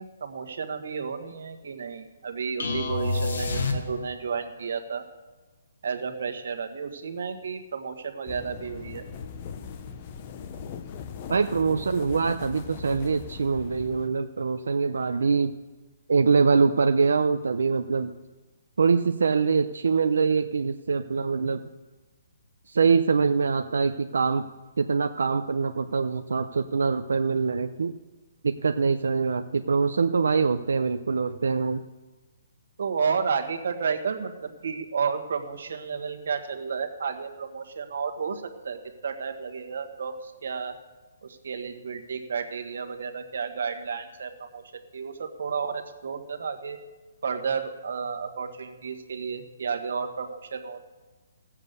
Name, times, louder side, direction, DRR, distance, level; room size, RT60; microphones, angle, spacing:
voice 1, 0.0-5.0 5.8-9.0 32.8-40.8 41.2-46.8 47.2-50.8, right 6 dB, 55° right, 6 dB, 1.5 m, -32 dB
sound 1, 2.6-4.3, left 2 dB, 70° left, 1.8 m, -28 dB
sound 2, 8.3-14.1, left 6 dB, 25° left, 0.6 m, -40 dB
voice 2, 11.3-15.5 16.1-18.1 18.8-21.6 22.7-24.5 24.8-27.9 28.4-31.8, right 5 dB, 90° right, 7 dB, 0.6 m, -24 dB
16.5 x 7.3 x 6.7 m, 1.2 s
hypercardioid pair, 175°, 0 cm